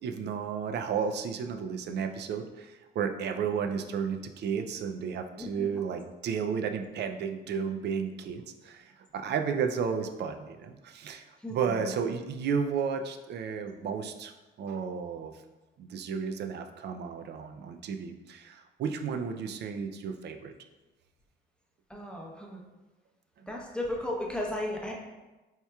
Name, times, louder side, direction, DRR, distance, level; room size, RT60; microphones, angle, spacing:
voice 1, 0.0-14.3 14.6-15.3 15.8-20.5, right 6 dB, 60° right, 6 dB, 0.4 m, -33 dB
voice 2, 5.4-5.7 11.4-11.9 21.9-22.6 23.5-24.9, left 1 dB, 5° left, -2 dB, 0.7 m, -35 dB
4.4 x 2.9 x 2.3 m, 1.1 s
cardioid pair, 90°, 20 cm